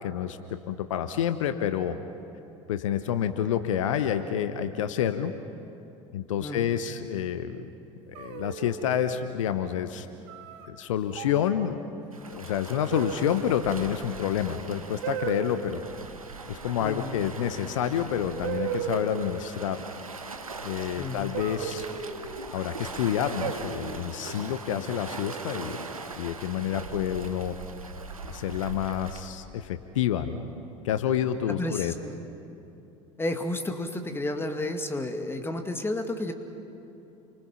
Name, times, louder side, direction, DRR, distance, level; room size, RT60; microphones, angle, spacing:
voice 1, 0.0-2.0 2.7-5.3 6.1-7.7 8.1-10.1 10.7-11.8 12.3-15.8 16.5-19.8 20.6-21.8 22.5-27.6 28.3-30.4 30.8-31.9, left 9 dB, 65° left, 10 dB, 1.0 m, -28 dB
voice 2, 6.4-6.7 16.8-17.2 21.0-21.3 31.5-32.2 33.2-36.3, left 1 dB, 15° left, 6 dB, 2.1 m, -32 dB
sound 1, 8.2-9.0 10.3-10.7 11.1-11.5 12.9-13.5 15.0-15.6 17.5-17.6 18.4-19.4 21.3-22.4 23.4-24.0 25.3-25.9, right 8 dB, 60° right, 1.9 m, -35 dB
Waves surf, 12.1-29.3, right 3 dB, 85° right, 1.2 m, -41 dB
30.0 x 25.0 x 5.7 m, 2.9 s
figure-of-eight pair, 70°, 18 cm